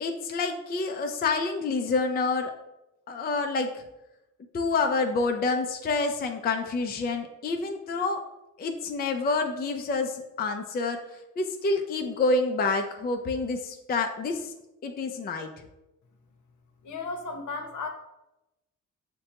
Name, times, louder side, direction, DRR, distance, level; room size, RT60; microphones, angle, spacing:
voice 1, 0.0-2.5 3.1-3.8 4.5-8.2 8.6-11.0 11.4-14.5 14.8-15.5, left 3 dB, 30° left, 4 dB, 0.4 m, -28 dB
voice 2, 16.8-17.9, left 3 dB, 70° left, 3 dB, 0.8 m, -34 dB
6.4 x 2.2 x 2.8 m, 0.93 s
cardioid pair, 70°, 32 cm